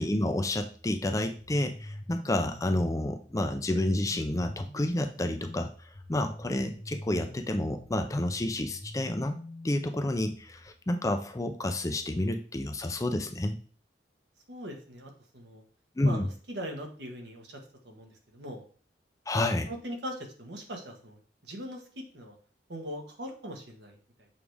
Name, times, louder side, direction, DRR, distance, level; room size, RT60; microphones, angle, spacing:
voice 1, 0.0-9.4 9.6-13.6 16.0-16.3 19.3-19.7, left 1 dB, 20° left, 6 dB, 0.5 m, -30 dB
sound 1, 0.6-10.7, left 1 dB, 35° left, 1.0 m, -46 dB
voice 2, 14.5-15.6 16.0-17.6 17.8-18.6 19.4-22.4 22.7-24.0, equal, 70° right, 2 dB, 1.4 m, -41 dB
7.0 x 4.8 x 3.4 m, 0.42 s
head